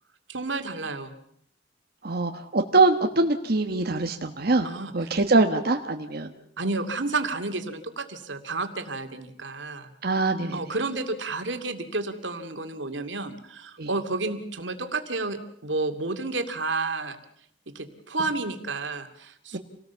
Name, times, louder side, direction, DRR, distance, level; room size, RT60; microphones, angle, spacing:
voice 1, 0.3-1.1 4.6-4.9 6.6-9.9 10.5-17.2 17.7-19.6, right 3 dB, 85° right, 7 dB, 2.4 m, -31 dB
voice 2, 2.0-4.7 4.9-6.3 10.0-10.6 13.8-13.9 19.5-19.6, right 3 dB, 55° right, 4 dB, 1.4 m, -23 dB
27.5 x 18.5 x 7.0 m, 0.69 s
head